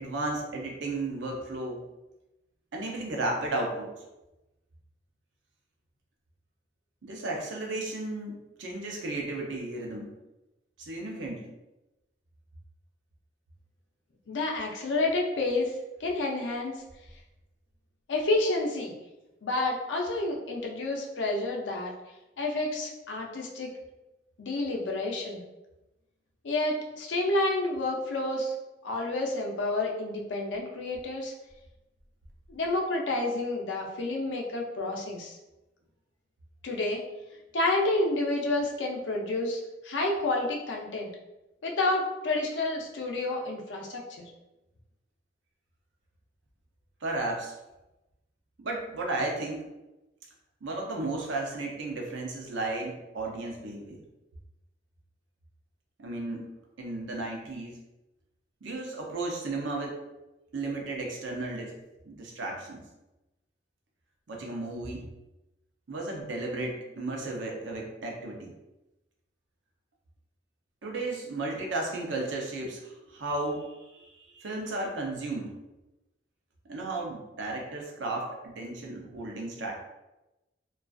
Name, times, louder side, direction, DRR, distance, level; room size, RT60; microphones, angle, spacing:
voice 1, 0.0-1.8 2.7-3.9 7.0-10.1 10.8-11.5 47.0-47.5 48.6-49.7 50.6-54.0 56.0-56.5 56.8-57.8 58.6-59.9 60.5-61.7 62.0-62.8 64.3-65.1 65.9-68.5 70.8-75.5 76.7-79.8, right 2 dB, 85° right, 0 dB, 0.6 m, -34 dB
voice 2, 14.3-15.7 16.0-16.8 18.1-19.0 19.4-21.9 22.4-23.7 24.4-25.4 26.4-28.5 28.8-31.3 32.5-35.4 36.6-37.0 37.5-41.1 41.6-44.3, left 2 dB, 85° left, 0 dB, 0.5 m, -29 dB
2.4 x 2.3 x 2.3 m, 0.98 s
head